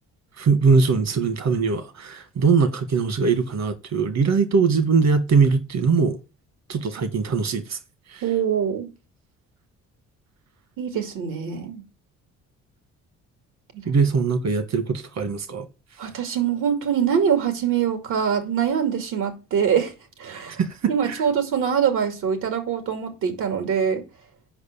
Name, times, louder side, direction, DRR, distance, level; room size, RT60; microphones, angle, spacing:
voice 1, 0.4-6.2 6.7-7.8 8.1-8.2 13.8-15.7 20.3-21.2, right 5 dB, 60° right, 1.7 m, -21 dB
voice 2, 8.2-8.9 10.8-11.8 13.7-13.8 16.0-19.9 20.2-20.6 20.9-24.0, right 7 dB, 85° right, 2.5 m, -24 dB
8.0 x 5.4 x 7.1 m
cardioid pair, 90°, 30 cm